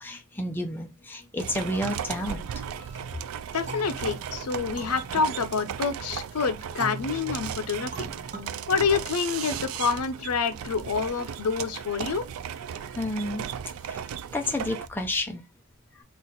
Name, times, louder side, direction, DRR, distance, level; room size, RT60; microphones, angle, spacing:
voice 1, 0.0-2.4 2.8-3.0 13.0-13.4 13.9-14.0 14.3-15.4, left 1 dB, 10° left, 0.5 m, -31 dB
sound 1, 1.4-14.9, right 8 dB, 70° right, 0.3 m, -36 dB
voice 2, 3.5-8.1 8.7-12.3, left 5 dB, 85° left, 0.6 m, -27 dB
sound 2, 3.7-6.2 6.8-9.6, right 2 dB, 35° right, 0.9 m, -42 dB
4.0 x 2.4 x 4.1 m
head